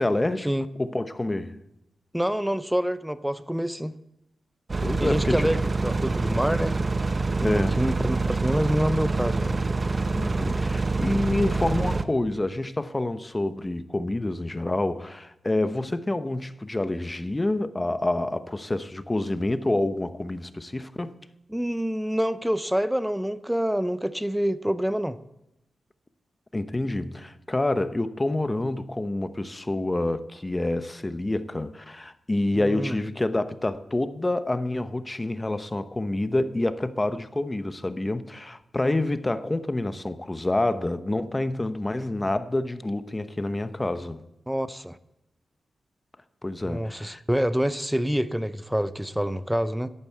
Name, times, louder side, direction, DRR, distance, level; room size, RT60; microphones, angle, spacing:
voice 1, 0.0-0.5 0.8-1.6 4.8-5.4 7.4-7.8 10.1-21.1 26.5-44.2 46.4-47.2, left 2 dB, 20° left, 0.9 m, -27 dB
voice 2, 2.1-3.9 5.0-7.1 7.4-9.6 21.5-25.2 32.5-33.0 44.5-45.0 46.6-49.9, equal, 5° right, 0.6 m, -27 dB
sound 1, 4.7-12.0, right 3 dB, 40° right, 0.8 m, -26 dB
11.0 x 9.0 x 8.0 m
cardioid pair, 65°, 0 cm